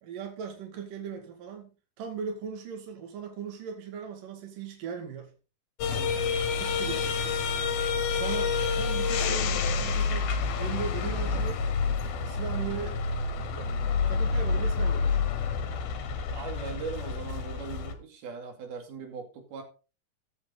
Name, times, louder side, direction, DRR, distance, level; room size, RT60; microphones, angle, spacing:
voice 1, 0.0-5.3 6.1-7.4 8.1-11.6 12.3-13.0 13.5-15.2, right 6 dB, 65° right, 3.9 m, -39 dB
sound 1, 5.8-17.9, left 5 dB, 80° left, 3.4 m, -28 dB
voice 2, 16.3-19.6, right 5 dB, 85° right, 4.4 m, -39 dB
15.0 x 8.7 x 4.0 m
omnidirectional pair, 4.3 m